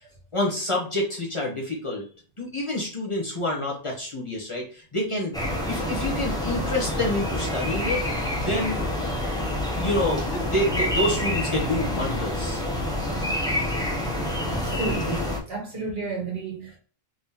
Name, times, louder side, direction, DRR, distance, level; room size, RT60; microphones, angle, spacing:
voice 1, 0.3-2.0 2.4-5.3 5.7-8.0 8.4-8.8 9.8-12.6, left 1 dB, 30° left, 1.1 m, -27 dB
sound 1, 5.3-15.4, left 1 dB, 5° left, 0.7 m, -27 dB
voice 2, 14.5-16.8, right 4 dB, 75° right, 1.6 m, -32 dB
3.6 x 2.9 x 2.8 m
omnidirectional pair, 1.0 m